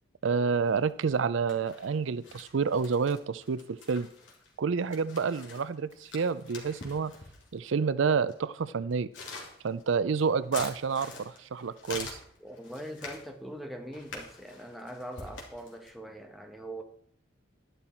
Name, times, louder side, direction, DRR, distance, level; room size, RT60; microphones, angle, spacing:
voice 1, 0.2-4.1 4.6-7.1 7.5-9.1 9.6-12.2, right 5 dB, 75° right, 16 dB, 0.5 m, -29 dB
sound 1, 0.7-1.2 1.5-7.6 8.3-8.4 8.9-13.3 13.9-15.9, left 4 dB, 70° left, 3.0 m, -45 dB
voice 2, 12.4-16.8, right 1 dB, ahead, 3 dB, 1.2 m, -42 dB
11.5 x 11.0 x 4.4 m, 0.64 s
head